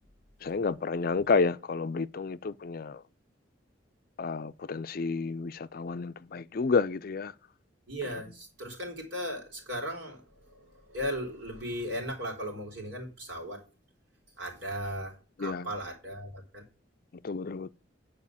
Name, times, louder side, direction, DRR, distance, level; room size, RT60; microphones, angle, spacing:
voice 1, 0.4-3.0 4.2-7.3 15.4-15.7 17.2-17.7, left 4 dB, 50° left, 0.4 m, -30 dB
voice 2, 7.9-13.6 14.4-16.6, equal, 65° right, 3.8 m, -37 dB
9.7 x 4.9 x 7.0 m
head